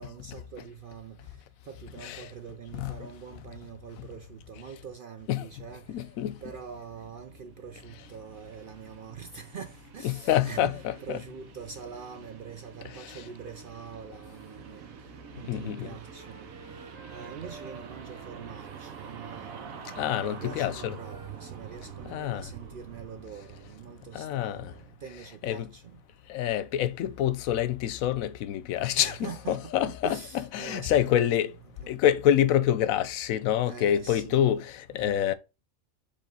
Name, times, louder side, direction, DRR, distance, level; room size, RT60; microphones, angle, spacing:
voice 1, 0.0-1.3 1.6-6.1 6.4-14.9 15.4-16.5 17.1-26.0 28.9-31.5 31.8-31.9 33.6-34.6 34.9-35.3, right 7 dB, 60° right, 0.5 m, -44 dB
voice 2, 2.7-3.1 5.3-5.5 5.9-6.4 10.0-11.2 13.0-13.2 15.5-15.9 20.0-20.9 22.1-22.5 24.1-24.7 25.4-25.7 26.3-29.2 29.5-31.5 31.9-35.3, left 11 dB, 80° left, 1.0 m, -27 dB
sound 1, 5.4-24.9, right 7 dB, 85° right, 1.3 m, -47 dB
Wind instrument woodwind instrument, 15.5-18.6 18.9-22.7, right 1 dB, 5° right, 2.4 m, -52 dB
5.1 x 3.6 x 5.3 m
omnidirectional pair, 1.4 m